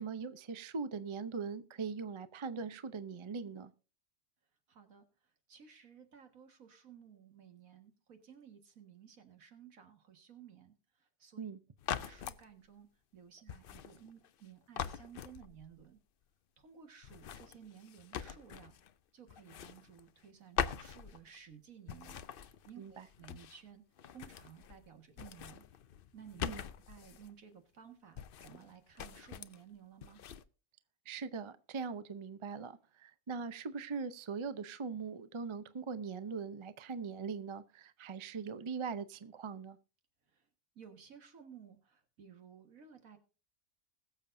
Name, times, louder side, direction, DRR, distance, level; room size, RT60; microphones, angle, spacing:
voice 1, 0.0-3.7 11.4-11.6 22.8-23.1 26.4-26.6 31.1-39.8, right 5 dB, 40° right, 0.4 m, -41 dB
voice 2, 4.7-5.1 5.5-10.7 11.2-11.5 11.9-12.9 13.1-16.0 16.6-18.8 19.1-23.8 24.1-25.6 26.1-26.5 26.9-30.2 40.8-43.2, right 8 dB, 70° right, 2.1 m, -56 dB
sound 1, 11.8-12.4 13.5-14.4 14.8-15.8 17.0-18.9 19.3-20.3 20.6-21.5 21.9-23.7 24.0-24.9 25.1-27.3 28.2-28.7 29.0-29.6 30.0-30.4, left 8 dB, 60° left, 0.6 m, -43 dB
21.0 x 7.1 x 2.6 m
omnidirectional pair, 1.5 m